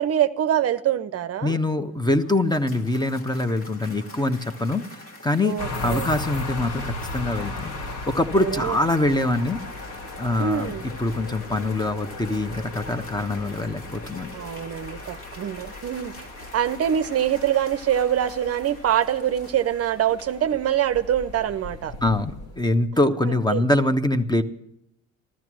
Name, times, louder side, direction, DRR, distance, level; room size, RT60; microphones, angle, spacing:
voice 1, 0.0-1.6 5.4-6.1 8.3-8.8 10.4-10.8 14.3-16.3 16.5-21.9 23.5-23.6, right 10 dB, 45° right, 11 dB, 0.8 m, -24 dB
voice 2, 1.4-4.8 5.2-5.6 5.8-9.6 10.2-14.4 22.0-24.4, left 2 dB, 10° left, 10 dB, 1.2 m, -24 dB
Cheering / Applause, 1.8-20.5, left 1 dB, 40° left, 2.1 m, -44 dB
sound 1, 5.6-22.8, left 2 dB, 75° left, 3.6 m, -37 dB
14.0 x 14.0 x 6.3 m, 0.79 s
hypercardioid pair, 60°, 35 cm